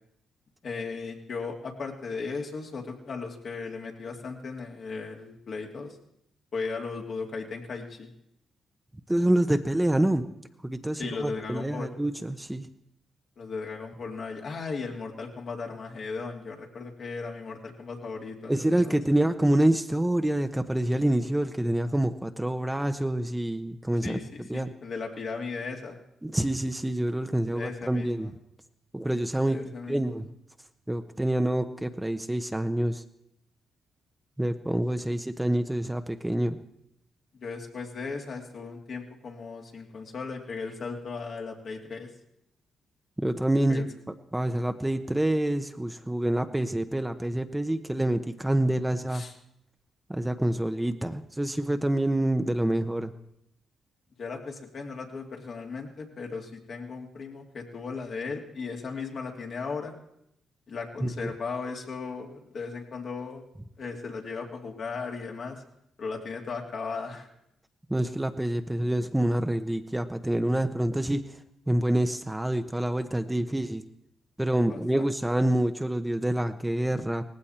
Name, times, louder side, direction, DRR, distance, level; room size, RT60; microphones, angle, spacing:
voice 1, 0.6-6.0 6.5-8.1 11.0-11.9 13.4-19.2 24.0-26.0 27.5-28.3 29.5-30.2 37.4-42.1 43.7-43.9 49.1-49.3 54.2-59.9 60.7-63.4 63.8-65.6 66.0-67.3 74.7-75.1, left 4 dB, 60° left, 1 dB, 2.6 m, -36 dB
voice 2, 9.1-10.3 10.6-12.7 18.5-24.7 26.2-28.3 28.9-30.3 30.9-33.0 34.4-36.6 43.2-43.9 44.3-49.2 50.1-53.1 61.0-61.3 67.9-71.2 71.7-73.8 74.4-77.2, right 1 dB, 10° right, 8 dB, 1.0 m, -27 dB
18.5 x 15.5 x 4.4 m, 0.78 s
supercardioid pair, 55°, 0 cm